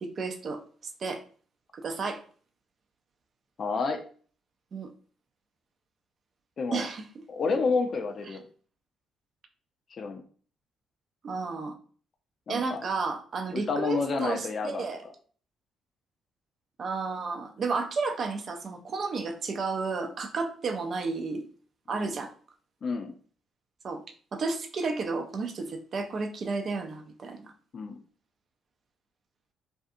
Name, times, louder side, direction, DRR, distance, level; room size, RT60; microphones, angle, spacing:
voice 1, 0.0-1.2 1.7-2.2 4.7-4.9 6.7-7.2 8.3-8.4 11.2-11.8 12.5-15.0 16.8-21.4 21.9-22.3 23.8-24.0 24.3-27.5, right 4 dB, 50° right, 6 dB, 0.5 m, -32 dB
voice 2, 3.6-4.0 6.6-6.8 7.3-8.4 9.9-10.2 12.5-12.8 13.5-14.8 22.0-22.1 22.8-23.1 27.7-27.9, left 4 dB, 50° left, 5 dB, 0.5 m, -29 dB
2.6 x 2.3 x 2.6 m, 0.43 s
hypercardioid pair, 50°, 0 cm